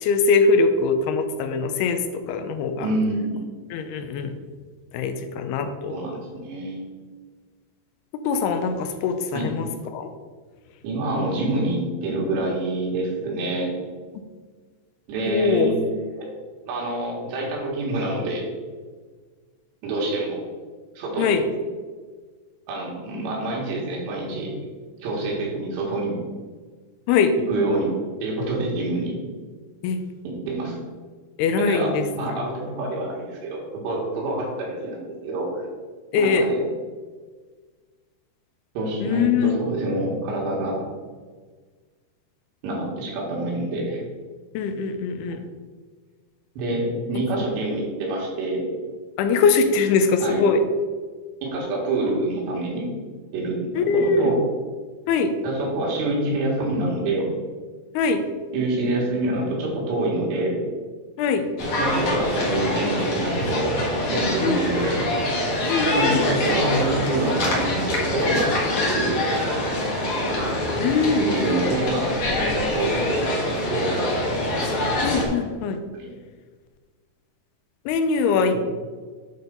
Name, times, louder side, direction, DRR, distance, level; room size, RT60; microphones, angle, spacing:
voice 1, 0.0-2.9 3.7-4.3 4.9-5.9 8.2-9.7 9.9-10.1 15.3-15.8 21.2-21.4 27.1-27.3 29.8-30.0 31.4-32.4 36.1-36.5 39.0-39.5 44.5-45.4 47.1-47.2 49.2-50.6 53.8-54.3 55.1-55.3 57.9-58.2 61.2-61.5 64.4-64.6 65.7-66.3 70.8-71.3 75.0-75.8 77.9-78.6, left 4 dB, 80° left, 8 dB, 2.5 m, -22 dB
voice 2, 2.8-3.4 5.9-6.8 9.3-9.5 10.8-13.7 15.1-16.3 16.7-18.5 19.8-20.4 20.9-21.4 22.7-24.5 25.0-26.2 27.5-29.2 30.2-30.8 31.6-35.7 36.2-36.6 38.8-40.8 42.6-44.0 46.6-48.7 50.2-50.4 51.4-52.9 53.3-54.4 55.4-57.3 58.5-60.6 61.8-65.0 65.9-69.2 71.2-73.2 73.6-74.2 76.0-76.1 78.5-78.6, right 2 dB, 85° right, -3 dB, 4.0 m, -26 dB
sound 1, 61.6-75.3, left 1 dB, 60° left, 1.4 m, -25 dB
8.6 x 4.3 x 5.2 m, 1.5 s
omnidirectional pair, 4.8 m